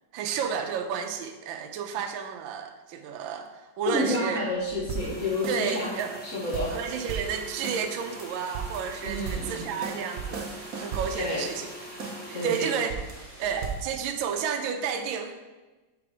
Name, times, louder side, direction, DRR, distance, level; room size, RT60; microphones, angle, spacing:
voice 1, 0.1-4.4 5.5-6.2 6.7-11.7 12.3-12.9 13.4-15.4, right 7 dB, 80° right, 5 dB, 1.3 m, -31 dB
voice 2, 3.8-5.9 6.2-6.7 9.0-9.7 11.1-11.5 12.3-12.7, left 1 dB, 45° left, -4 dB, 1.5 m, -29 dB
sound 1, 4.6-5.6 6.0-6.1 6.4-7.8 8.2-8.3 8.5-12.3 12.6-14.0, right 6 dB, 55° right, 1.1 m, -36 dB
sound 2, 4.9-12.6, right 1 dB, 10° left, 0.4 m, -44 dB
sound 3, 6.4-13.7, equal, 70° left, 2.9 m, -50 dB
5.1 x 4.7 x 5.0 m, 1.2 s
omnidirectional pair, 2.2 m